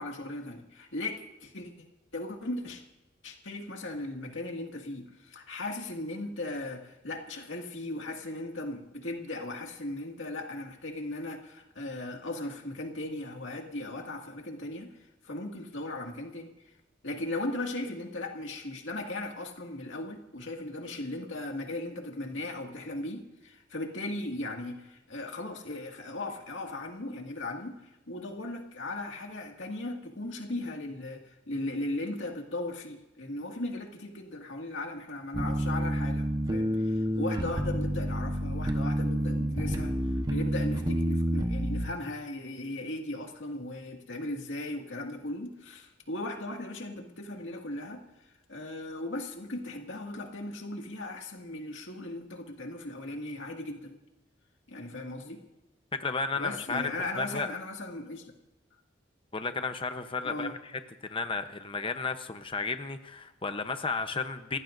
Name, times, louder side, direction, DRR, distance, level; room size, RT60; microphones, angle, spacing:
voice 1, 0.0-1.7 2.1-2.8 3.2-14.9 15.2-16.7 17.0-27.7 28.1-39.9 40.3-48.0 48.5-54.0 54.7-55.4 56.4-58.3 60.2-60.6, left 2 dB, 80° left, 2 dB, 2.1 m, -37 dB
sound 1, 35.3-41.9, equal, 25° right, 1.1 m, -29 dB
voice 2, 55.9-56.9 57.2-57.5 59.3-64.6, left 4 dB, 30° left, 8 dB, 0.8 m, -33 dB
29.5 x 15.0 x 2.6 m, 0.93 s
head